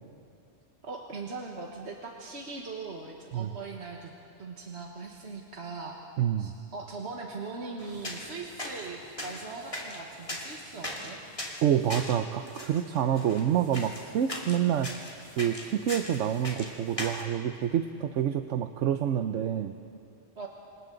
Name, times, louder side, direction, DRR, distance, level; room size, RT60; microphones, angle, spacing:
voice 1, 0.8-4.1 4.4-6.0 6.4-11.2 20.4-20.5, right 4 dB, 65° right, 0 dB, 1.7 m, -40 dB
voice 2, 6.2-6.5 11.6-15.0 15.4-19.7, right 9 dB, 85° right, 8 dB, 1.0 m, -27 dB
sound 1, 7.8-17.2, left 1 dB, 30° left, 2.4 m, -40 dB
28.0 x 26.5 x 3.9 m, 2.5 s
omnidirectional pair, 1.2 m